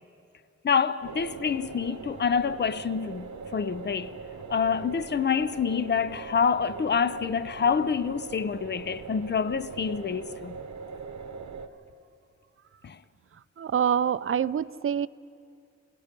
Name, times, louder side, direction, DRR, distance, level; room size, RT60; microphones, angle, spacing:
voice 1, 0.6-4.2 4.5-10.6 12.8-13.0, left 6 dB, 35° left, 0.6 m, -27 dB
sound 1, 1.0-11.7, right 5 dB, 75° right, 1.0 m, -41 dB
voice 2, 13.6-15.1, right 8 dB, 50° right, 0.4 m, -26 dB
28.0 x 18.0 x 5.2 m
wide cardioid pair, 110°, 29 cm